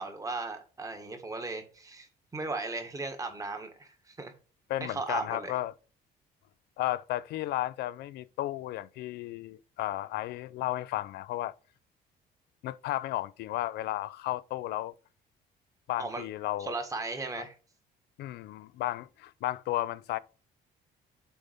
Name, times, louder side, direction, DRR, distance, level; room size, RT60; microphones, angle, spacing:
voice 1, 0.0-4.3 4.8-5.6 16.0-16.2 16.6-17.5, right 3 dB, 20° right, 1.6 m, -36 dB
voice 2, 4.7-5.7 6.8-11.5 12.6-14.9 15.9-16.7 18.2-20.2, left 15 dB, 75° left, 0.5 m, -33 dB
7.1 x 4.1 x 5.1 m
cardioid pair, 110°, 17 cm